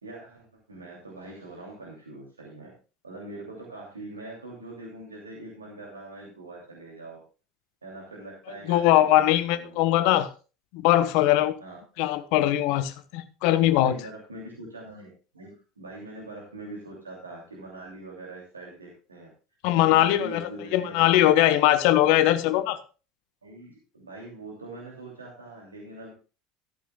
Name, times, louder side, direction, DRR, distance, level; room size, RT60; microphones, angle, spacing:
voice 1, 0.0-2.7 3.0-7.2 7.8-10.0 11.6-11.8 13.8-19.3 19.7-21.2 23.4-26.1, right 2 dB, 80° right, 2.8 m, -43 dB
voice 2, 8.7-10.3 10.7-11.5 12.0-14.0 19.6-22.8, left 13 dB, 55° left, 1.1 m, -21 dB
13.5 x 12.5 x 2.4 m
figure-of-eight pair, 70°, 0 cm